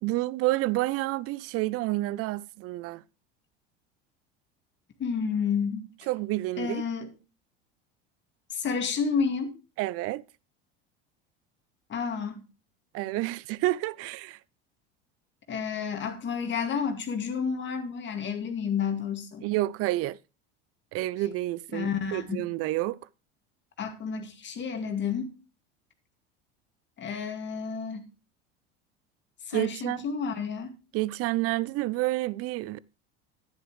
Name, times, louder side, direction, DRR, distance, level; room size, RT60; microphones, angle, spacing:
voice 1, 0.0-3.0 6.1-6.8 9.8-10.2 12.9-14.4 19.4-20.2 20.9-23.0 29.5-30.1 30.9-32.8, right 17 dB, 50° right, 0.6 m, -29 dB
voice 2, 5.0-5.9 6.6-7.1 8.5-9.5 11.9-12.4 15.5-19.5 21.7-22.4 23.8-25.3 27.0-28.0 29.5-30.8, left 6 dB, 40° left, 2.2 m, -30 dB
10.5 x 10.0 x 3.1 m
hypercardioid pair, 90°, 30 cm